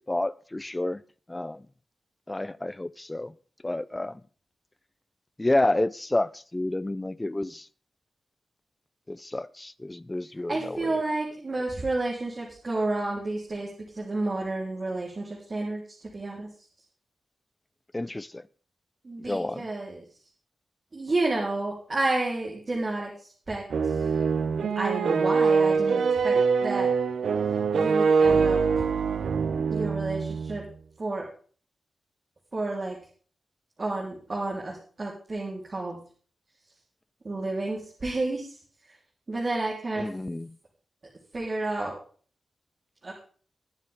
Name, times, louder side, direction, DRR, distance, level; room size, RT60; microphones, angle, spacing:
voice 1, 0.1-1.0 1.3-1.6 2.3-3.3 3.6-4.2 5.4-7.7 9.1-11.0 11.5-11.6 17.9-18.4 19.3-19.7 40.0-40.6, left 2 dB, 15° left, 0.5 m, -29 dB
voice 2, 10.5-13.7 14.0-15.8 16.1-16.5 19.0-20.0 20.9-23.1 23.5-23.6 24.8-26.3 26.6-26.9 27.7-28.6 29.7-30.6 31.0-31.3 32.5-33.0 33.8-36.0 37.2-38.5 39.3-40.1 41.3-41.9 43.0-43.1, right 2 dB, 35° right, 3.5 m, -30 dB
sound 1, 23.7-30.6, right 5 dB, 85° right, 0.9 m, -24 dB
21.5 x 7.4 x 3.6 m
wide cardioid pair, 135°, 0 cm